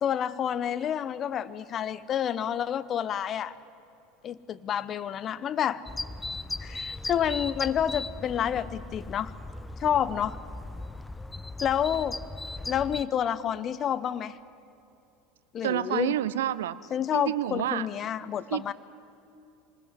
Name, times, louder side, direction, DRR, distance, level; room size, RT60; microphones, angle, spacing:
voice 1, 0.0-3.6 4.2-5.8 6.6-9.3 9.8-10.4 11.6-12.2 12.7-14.4 15.5-16.2 16.9-18.7, left 9 dB, 40° left, 16 dB, 0.9 m, -29 dB
sound 1, 5.9-13.1, left 2 dB, 10° left, 0.8 m, -38 dB
voice 2, 15.6-16.8 17.1-17.9 18.5-18.7, right 12 dB, 70° right, 17 dB, 0.7 m, -28 dB
24.5 x 19.5 x 9.6 m, 2.8 s
figure-of-eight pair, 75°, 0 cm